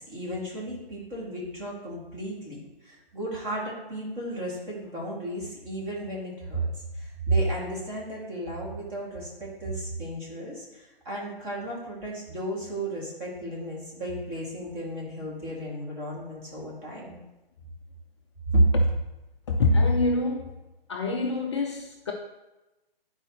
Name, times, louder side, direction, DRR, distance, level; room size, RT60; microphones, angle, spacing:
voice 1, 0.0-17.2 18.5-18.7, right 1 dB, 20° right, -5 dB, 2.3 m, -32 dB
voice 2, 19.5-20.5 20.9-22.1, left 2 dB, 30° left, 0 dB, 0.6 m, -25 dB
10.0 x 4.7 x 3.1 m, 1.0 s
figure-of-eight pair, 135°, 30 cm